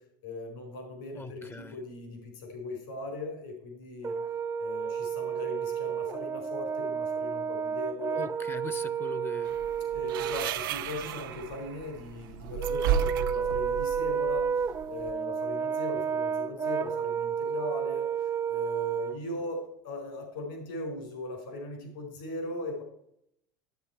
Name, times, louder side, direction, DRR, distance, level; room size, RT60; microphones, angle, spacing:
voice 1, 0.2-4.1 4.6-8.2 9.9-14.5 14.9-18.1 18.5-22.8, left 2 dB, 75° left, 4.1 m, -39 dB
voice 2, 1.2-1.8 8.1-9.6, left 3 dB, 20° left, 0.5 m, -40 dB
Brass instrument, 4.0-10.5 12.6-19.2, right 7 dB, 25° right, 0.5 m, -31 dB
sound 1, 9.5-15.1, right 10 dB, 80° right, 0.6 m, -34 dB
9.3 x 8.5 x 4.5 m
hypercardioid pair, 85°, 11 cm